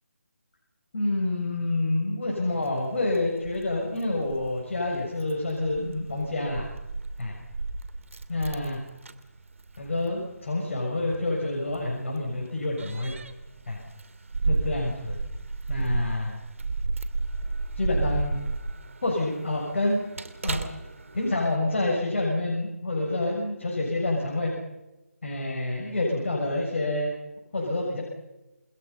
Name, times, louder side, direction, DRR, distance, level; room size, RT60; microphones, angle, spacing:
voice 1, 0.9-6.7 7.2-7.3 8.3-8.8 9.8-13.1 13.7-13.8 14.5-15.2 15.7-16.3 17.8-18.4 19.0-20.0 20.4-20.6 21.1-24.5 25.2-27.1 27.5-28.0, left 2 dB, 55° left, -2 dB, 7.2 m, -28 dB
Keys jangling, 2.5-21.6, right 3 dB, 60° right, 2.4 m, -34 dB
29.0 x 21.0 x 5.8 m, 0.99 s
figure-of-eight pair, 155°, 8 cm